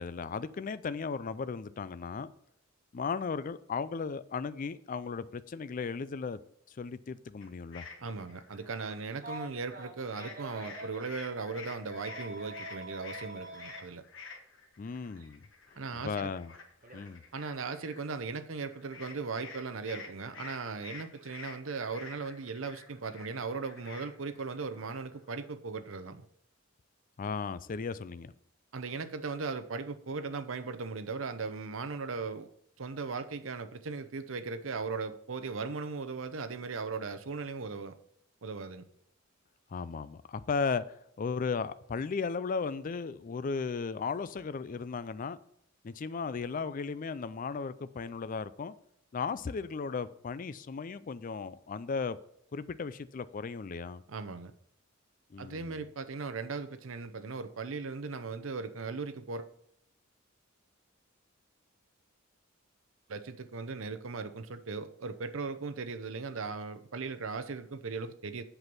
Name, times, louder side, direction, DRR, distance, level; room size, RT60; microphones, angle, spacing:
voice 1, 0.0-2.3 2.9-6.4 6.7-7.8 14.8-15.4 16.0-16.5 16.9-17.2 27.2-28.3 39.7-45.4 45.8-48.7 49.1-52.2 52.5-54.0 55.3-55.8, left 5 dB, 40° left, 0.4 m, -36 dB
sound 1, 7.4-9.8 10.1-25.5, left 4 dB, 65° left, 1.4 m, -50 dB
voice 2, 8.0-14.0 15.7-16.3 17.3-26.3 28.7-32.5 32.8-38.0 38.4-38.8 54.1-54.5 55.4-59.5 63.1-68.4, right 4 dB, 70° right, 0.7 m, -38 dB
Telephone, 9.2-11.0 11.9-13.8 15.2-15.3 16.8-17.0, right 1 dB, 40° right, 1.3 m, -45 dB
8.0 x 6.1 x 5.4 m
head